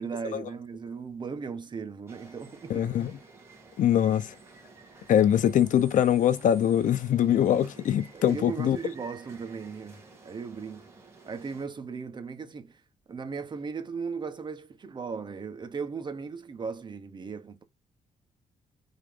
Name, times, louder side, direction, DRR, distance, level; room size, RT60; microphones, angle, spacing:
voice 1, 0.0-2.9 8.1-10.9 11.2-12.8 13.1-17.6, right 5 dB, 35° right, 1.2 m, -37 dB
sound 1, 2.1-11.7, right 3 dB, 20° right, 2.6 m, -52 dB
voice 2, 2.7-3.1 3.8-4.3 5.1-8.8, left 10 dB, 75° left, 0.8 m, -23 dB
4.9 x 4.1 x 5.2 m
cardioid pair, 145°, 13 cm